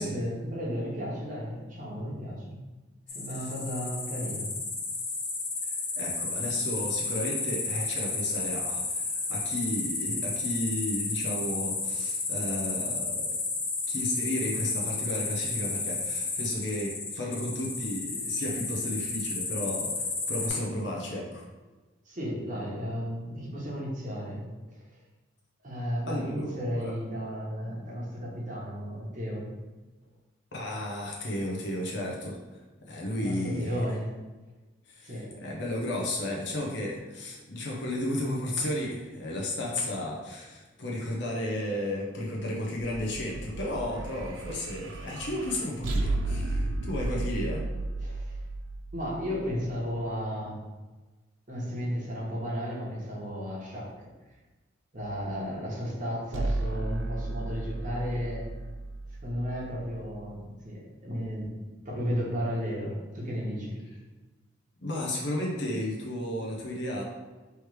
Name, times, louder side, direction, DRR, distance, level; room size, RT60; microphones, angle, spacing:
voice 1, 0.0-2.6 3.1-4.5 22.1-24.5 25.6-29.5 33.1-34.1 35.0-35.4 48.0-48.4 48.9-50.6 51.5-54.1 54.9-58.5 59.2-63.8, equal, 40° right, -4 dB, 1.2 m, -34 dB
sound 1, 3.1-20.5, left 3 dB, 30° left, 0.6 m, -32 dB
voice 2, 6.0-13.3 13.9-21.4 26.1-26.9 30.5-32.4 32.8-33.8 34.9-47.6 64.8-67.0, left 1 dB, 65° left, -3 dB, 0.8 m, -33 dB
sound 2, 42.8-50.1 56.3-60.4, right 2 dB, 75° right, 0.5 m, -34 dB
3.3 x 3.1 x 4.7 m, 1.3 s
head